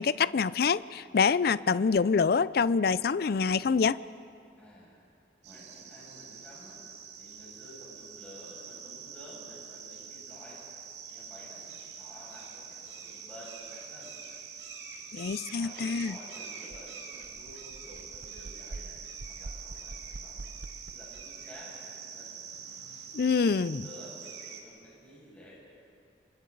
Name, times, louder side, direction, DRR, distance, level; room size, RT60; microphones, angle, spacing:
voice 1, 0.0-4.0 15.1-16.2 23.1-23.8, left 5 dB, 55° left, 18 dB, 0.4 m, -26 dB
voice 2, 4.6-5.0 5.4-6.8 7.2-10.6 11.1-11.6 12.0-14.1 15.2-20.5 20.9-22.3 23.8-25.5, equal, 10° left, -8 dB, 6.4 m, -52 dB
sound 1, 5.4-24.6, right 6 dB, 80° right, 2.2 m, -45 dB
sound 2, 16.7-16.8 17.2-21.3, right 2 dB, 55° right, 0.6 m, -45 dB
29.0 x 25.5 x 4.0 m, 2.4 s
head